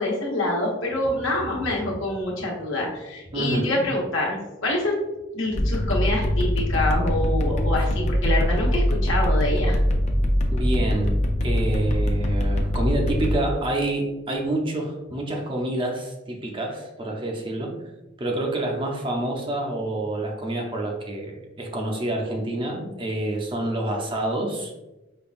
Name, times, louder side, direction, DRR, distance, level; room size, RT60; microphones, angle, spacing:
voice 1, 0.0-5.0 5.3-9.8, left 1 dB, 75° left, -2 dB, 1.0 m, -26 dB
voice 2, 3.3-3.8 10.5-17.7 18.2-24.7, right 1 dB, 25° right, 1 dB, 0.6 m, -28 dB
sound 1, 5.5-13.3, equal, 35° left, 0.4 m, -22 dB
5.1 x 2.3 x 2.4 m, 1.0 s
head